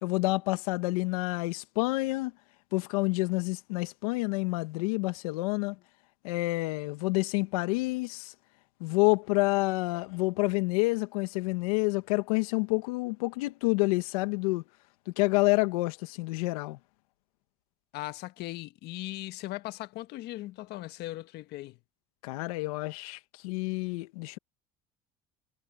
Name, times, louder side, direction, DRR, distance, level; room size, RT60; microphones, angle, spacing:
voice 1, 0.0-2.3 2.7-5.7 6.2-8.3 8.8-14.6 15.2-16.8 22.2-24.4, left 24 dB, 85° left, 1.7 m, -28 dB
voice 2, 17.9-21.8, left 17 dB, 65° left, 1.3 m, -39 dB
supercardioid pair, 80°, 18 cm